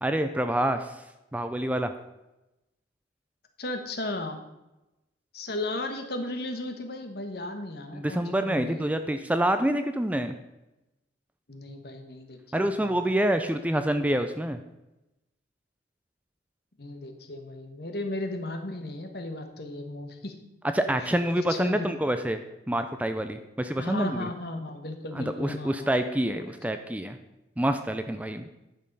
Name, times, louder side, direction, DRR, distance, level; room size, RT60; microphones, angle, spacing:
voice 1, 0.0-1.0 1.3-1.9 7.9-10.3 12.5-14.6 20.7-24.3 25.1-27.2 27.6-28.5, right 1 dB, 10° right, 8 dB, 0.4 m, -27 dB
voice 2, 3.6-4.4 5.3-8.9 11.5-12.4 12.7-12.9 16.8-20.3 21.4-21.9 23.8-26.0 26.2-26.4, left 2 dB, 60° left, 5 dB, 1.3 m, -35 dB
10.5 x 6.6 x 5.4 m, 0.96 s
head